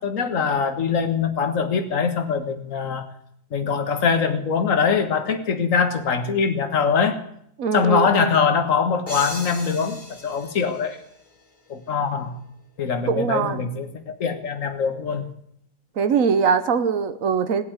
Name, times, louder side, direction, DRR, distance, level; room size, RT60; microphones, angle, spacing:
voice 1, 0.0-3.1 3.5-7.2 7.7-11.0 11.7-12.4 12.8-15.3, left 6 dB, 50° left, 8 dB, 1.7 m, -23 dB
voice 2, 7.6-8.4 13.1-13.7 16.0-17.6, right 6 dB, 55° right, 12 dB, 1.4 m, -22 dB
sound 1, 9.1-11.7, left 2 dB, 35° left, 3.0 m, -37 dB
18.5 x 8.4 x 9.1 m, 0.71 s
omnidirectional pair, 1.8 m